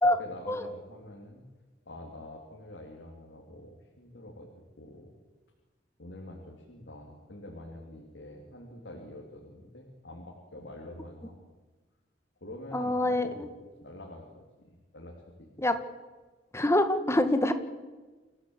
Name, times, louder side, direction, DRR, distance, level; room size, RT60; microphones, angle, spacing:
voice 1, 0.0-1.4 1.8-5.1 6.0-11.4 12.4-15.7, left 1 dB, 70° left, 0 dB, 3.3 m, -46 dB
voice 2, 12.7-13.3 15.6-15.8 16.5-17.5, left 1 dB, 15° left, 9 dB, 1.6 m, -25 dB
27.5 x 15.0 x 8.0 m, 1.3 s
head